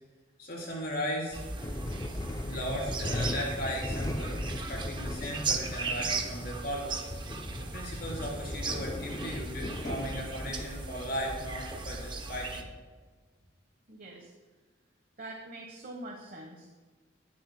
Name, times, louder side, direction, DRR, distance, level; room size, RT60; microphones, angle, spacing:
voice 1, 0.4-1.4 2.4-7.0 7.6-12.7, equal, 50° left, -3 dB, 3.7 m, -37 dB
sound 1, 1.3-12.6, right 3 dB, 25° right, 0.7 m, -37 dB
sound 2, 1.6-10.6, left 1 dB, 20° left, 0.4 m, -38 dB
voice 2, 13.9-14.3 15.2-16.7, right 1 dB, 45° right, 0 dB, 1.2 m, -44 dB
19.5 x 10.5 x 2.2 m, 1.4 s
head